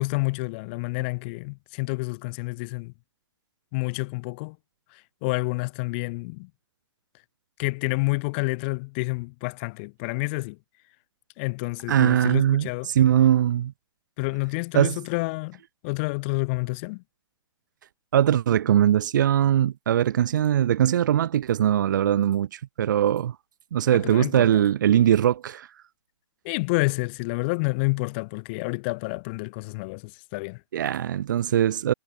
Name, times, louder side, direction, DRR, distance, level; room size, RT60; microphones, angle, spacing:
voice 1, 0.0-2.9 3.7-4.6 4.9-6.5 7.6-10.6 11.4-12.9 14.2-17.0 23.9-24.5 26.4-30.6, left 28 dB, 20° left, 4.9 m, -29 dB
voice 2, 11.9-13.7 14.7-15.0 18.1-23.3 23.7-25.7 30.7-31.9, right 10 dB, 40° right, 2.5 m, -21 dB
hypercardioid pair, 180°, 15 cm